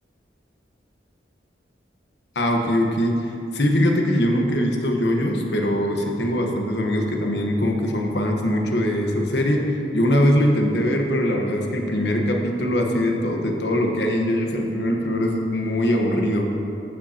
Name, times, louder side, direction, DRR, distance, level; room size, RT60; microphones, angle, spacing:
voice 1, 2.3-3.3 3.5-9.7 9.9-16.5, equal, 75° left, 1 dB, 1.2 m, -22 dB
15.5 x 7.6 x 2.9 m, 2.7 s
head